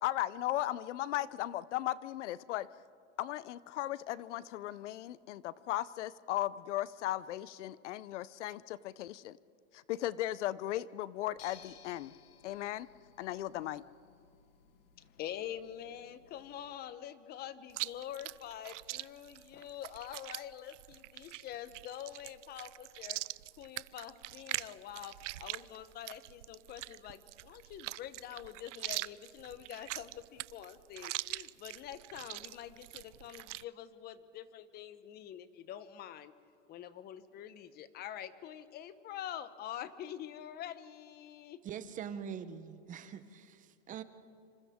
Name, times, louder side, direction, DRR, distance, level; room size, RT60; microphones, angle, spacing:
voice 1, 0.0-2.7 3.2-9.4 9.7-12.1 12.4-12.9 13.2-13.8, left 14 dB, 80° left, 19 dB, 0.7 m, -36 dB
sound 1, 11.4-16.7, left 8 dB, 55° left, 2.0 m, -60 dB
voice 2, 15.0-23.2 23.6-36.3 36.7-41.6, left 11 dB, 25° left, 14 dB, 0.9 m, -46 dB
Chewing mastication, 17.7-33.6, right 17 dB, 90° right, 0.5 m, -43 dB
voice 3, 41.6-44.0, right 8 dB, 20° right, 12 dB, 0.8 m, -43 dB
27.0 x 26.5 x 3.6 m, 2.6 s
supercardioid pair, 145°, 35 cm